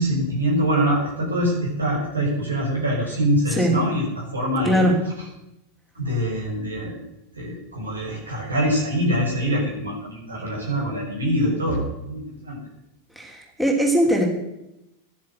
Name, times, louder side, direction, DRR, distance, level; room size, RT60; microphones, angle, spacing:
voice 1, 0.0-5.3 5.9-7.0 7.3-12.6, equal, 75° right, -2 dB, 6.0 m, -24 dB
voice 2, 4.6-4.9 13.2-14.3, equal, 5° right, 0 dB, 2.9 m, -20 dB
12.5 x 10.5 x 8.0 m, 0.87 s
figure-of-eight pair, 90°, 0 cm